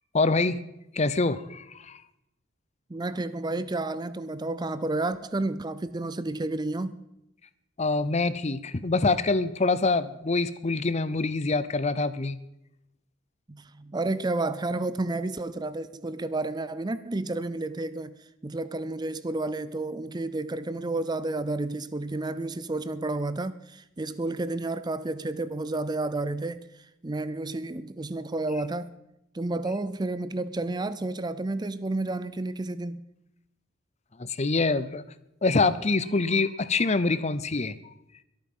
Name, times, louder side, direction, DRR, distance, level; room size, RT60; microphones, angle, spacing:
voice 1, 0.1-0.6 0.9-2.0 7.8-12.4 34.2-35.0 35.4-37.8, left 3 dB, 35° left, 0.7 m, -25 dB
voice 2, 2.9-7.1 13.5-18.1 18.4-26.6 27.0-28.9 29.3-33.0, right 2 dB, 20° right, 0.5 m, -31 dB
23.0 x 9.0 x 5.5 m
head